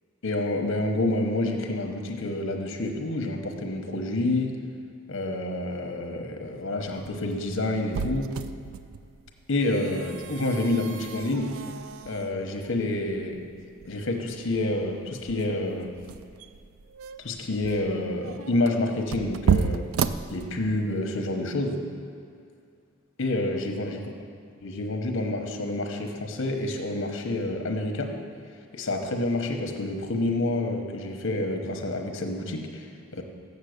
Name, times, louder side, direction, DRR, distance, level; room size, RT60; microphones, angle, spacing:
voice 1, 0.2-4.6 5.1-8.4 9.5-11.6 12.0-13.4 13.8-15.9 17.2-19.9 20.3-21.9 23.2-24.0 24.6-28.2 28.7-33.2, left 2 dB, 65° left, 4 dB, 1.0 m, -28 dB
sound 1, 6.8-21.0, right 7 dB, 80° right, 0.4 m, -33 dB
7.3 x 7.0 x 6.5 m, 2.4 s
head